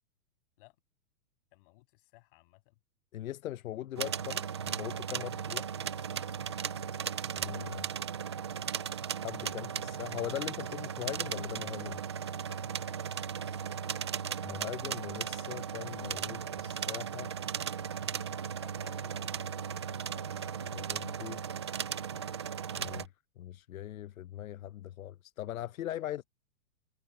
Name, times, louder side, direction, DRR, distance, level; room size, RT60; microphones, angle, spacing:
voice 1, 1.5-2.7 5.1-6.6 12.5-12.9 18.0-19.7 20.1-20.5 26.0-26.1, left 22 dB, 40° left, 7.2 m, -60 dB
voice 2, 3.1-5.6 7.4-7.9 9.2-12.0 14.4-17.3 20.0-20.1 20.7-21.4 22.8-23.1 23.4-26.2, left 13 dB, 70° left, 0.8 m, -40 dB
sound 1, 4.0-23.1, right 7 dB, 20° right, 0.4 m, -37 dB
hypercardioid pair, 160°, 43 cm